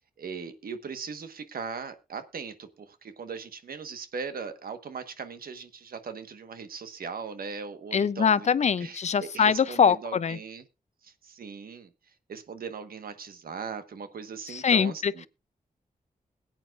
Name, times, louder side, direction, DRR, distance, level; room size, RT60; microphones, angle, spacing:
voice 1, 0.2-8.5 8.8-10.6 11.0-11.9 12.3-15.2, right 5 dB, 80° right, 1.3 m, -39 dB
voice 2, 7.9-10.4 14.5-15.3, left 7 dB, 50° left, 0.5 m, -23 dB
21.5 x 8.9 x 2.4 m
wide cardioid pair, 125°, 15 cm